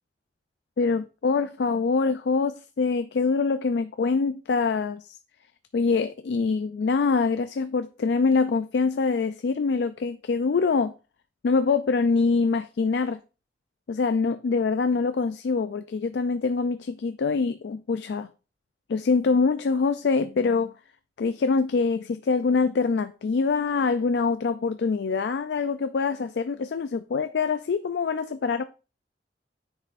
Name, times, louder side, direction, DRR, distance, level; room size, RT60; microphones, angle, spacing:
voice 1, 0.8-5.2 5.7-10.9 11.4-13.2 13.9-18.3 18.9-20.7 21.2-28.6, left 4 dB, 70° left, 0.4 m, -24 dB
9.6 x 5.4 x 2.5 m
head